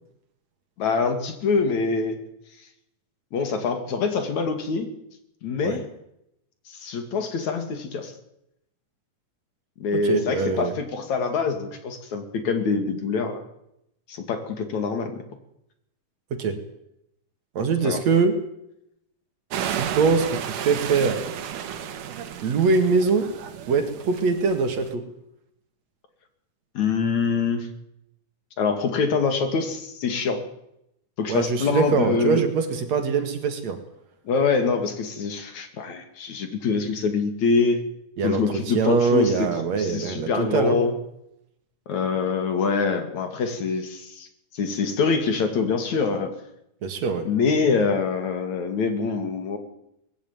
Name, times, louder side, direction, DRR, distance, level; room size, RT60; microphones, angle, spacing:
voice 1, 0.8-2.2 3.3-4.9 5.4-5.8 6.7-8.1 9.8-13.4 14.1-15.2 17.8-18.0 26.8-27.7 28.6-30.4 31.2-32.4 34.3-37.8 38.2-39.5 39.8-40.9 41.9-44.3 44.5-46.3 47.3-49.6, left 5 dB, 65° left, 7 dB, 3.5 m, -25 dB
voice 2, 9.9-10.7 16.3-16.6 17.6-18.4 19.7-21.2 22.4-23.3 23.7-25.0 31.3-33.8 38.2-40.8 46.8-47.3, right 4 dB, 60° right, 7 dB, 3.0 m, -23 dB
sound 1, 19.5-24.9, right 9 dB, 75° right, 3.0 m, -33 dB
20.0 x 15.0 x 9.3 m, 0.80 s
omnidirectional pair, 3.7 m